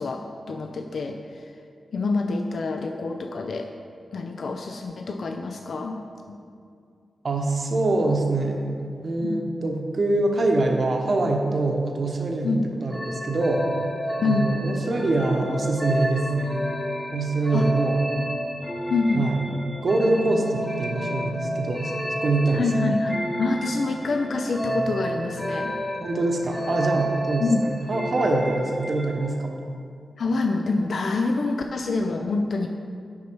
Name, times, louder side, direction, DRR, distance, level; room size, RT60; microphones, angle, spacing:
voice 1, 0.0-1.5 1.9-3.7 4.1-6.0 6.3-6.4 9.2-9.4 12.4-12.7 14.2-14.6 17.5-17.7 18.9-19.3 22.5-25.8 27.4-27.6 30.2-32.7, left 3 dB, 65° left, 4 dB, 0.4 m, -26 dB
voice 2, 7.2-8.7 9.0-12.5 12.8-13.7 14.2-16.6 17.1-18.0 19.1-19.3 19.8-22.7 26.0-27.4 27.9-29.5, right 2 dB, 55° right, 2 dB, 0.8 m, -24 dB
sound 1, 12.9-29.3, equal, 10° left, 1.1 m, -30 dB
6.2 x 5.6 x 4.5 m, 2.4 s
cardioid pair, 80°, 0 cm